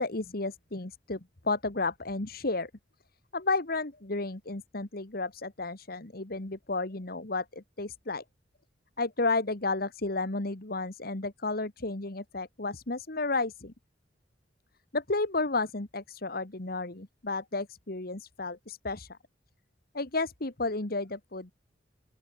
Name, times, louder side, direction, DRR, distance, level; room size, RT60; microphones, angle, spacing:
voice 1, 0.0-2.7 3.3-8.2 9.0-13.7 14.9-19.2 19.9-21.5, left 3 dB, 55° left, 1.9 m, -32 dB
open air
head